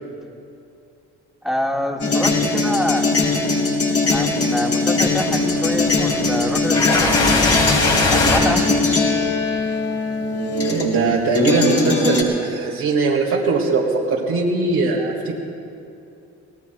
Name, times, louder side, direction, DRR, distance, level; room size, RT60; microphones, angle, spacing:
voice 1, 1.4-3.1 4.1-7.6 8.1-8.8, equal, ahead, 1 dB, 1.7 m, -26 dB
sound 1, 2.0-11.1 11.3-12.2, left 3 dB, 50° left, 2.7 m, -20 dB
sound 2, 5.3-8.4, left 3 dB, 85° left, 4.0 m, -21 dB
voice 2, 10.2-15.3, right 3 dB, 90° right, -6 dB, 2.0 m, -21 dB
26.0 x 18.5 x 2.3 m, 2.5 s
supercardioid pair, 65°, 30 cm